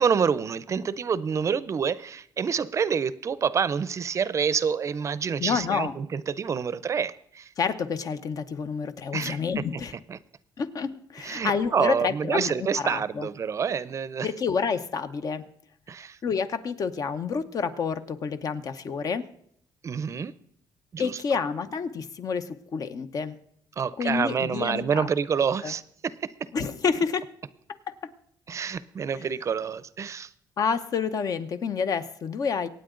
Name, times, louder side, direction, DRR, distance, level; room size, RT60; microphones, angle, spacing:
voice 1, 0.0-7.5 9.1-9.4 10.1-10.2 11.2-14.3 15.9-16.2 19.8-20.3 20.9-21.2 23.8-26.3 28.5-30.3, right 6 dB, 40° right, 17 dB, 0.6 m, -27 dB
voice 2, 5.4-5.9 7.6-9.9 10.6-13.3 14.2-15.4 16.2-19.3 21.0-23.4 24.0-25.1 25.6-25.7 26.5-27.3 27.9-28.0 30.6-32.7, left 6 dB, 50° left, 11 dB, 0.9 m, -29 dB
24.0 x 9.2 x 3.8 m, 0.67 s
cardioid pair, 120°, 8 cm